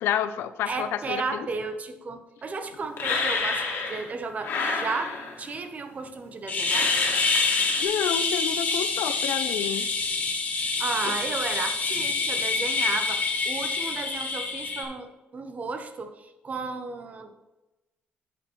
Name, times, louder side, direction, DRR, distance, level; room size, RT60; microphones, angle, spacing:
voice 1, 0.0-1.5 7.8-9.9 11.0-11.1, left 9 dB, 85° left, 12 dB, 0.5 m, -29 dB
voice 2, 0.7-3.6 3.9-6.9 10.8-17.3, right 4 dB, 40° right, 8 dB, 0.9 m, -34 dB
sound 1, 3.0-4.1 4.4-5.5 6.6-7.8, left 4 dB, 70° left, 1.9 m, -30 dB
sound 2, 6.5-14.8, left 4 dB, 40° left, 1.5 m, -26 dB
11.0 x 7.0 x 3.1 m, 1.0 s
cardioid pair, 115°, 4 cm